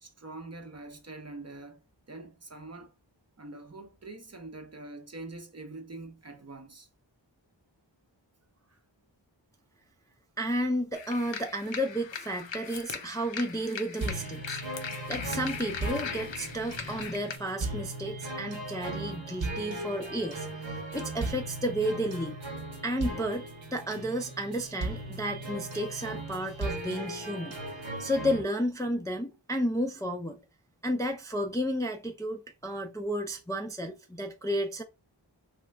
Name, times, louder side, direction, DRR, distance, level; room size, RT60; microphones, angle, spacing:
voice 1, 0.0-2.9 3.4-6.9 8.6-8.8, right 2 dB, 35° right, 0.6 m, -44 dB
voice 2, 10.4-14.6 15.1-22.4 22.8-23.5 23.7-27.6 28.0-30.4 30.8-34.8, equal, 10° left, 0.4 m, -32 dB
sound 1, 10.9-17.4, left 6 dB, 75° left, 0.6 m, -39 dB
sound 2, 14.0-28.4, right 2 dB, 85° right, 0.9 m, -37 dB
3.1 x 2.3 x 3.2 m
wide cardioid pair, 45°, 45 cm